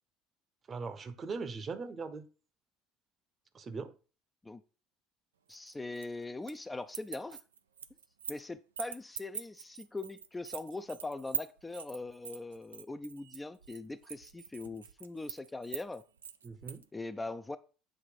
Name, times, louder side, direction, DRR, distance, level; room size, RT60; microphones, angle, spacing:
voice 1, 0.7-2.3 3.5-3.9 16.4-16.8, right 4 dB, 35° right, 0.8 m, -40 dB
voice 2, 5.5-7.4 8.3-16.0 16.9-17.6, left 2 dB, 15° left, 0.4 m, -41 dB
sound 1, 5.5-6.6 6.9-8.5 8.8-16.8, right 7 dB, 85° right, 0.4 m, -43 dB
7.7 x 2.6 x 5.1 m
figure-of-eight pair, 65°, 0 cm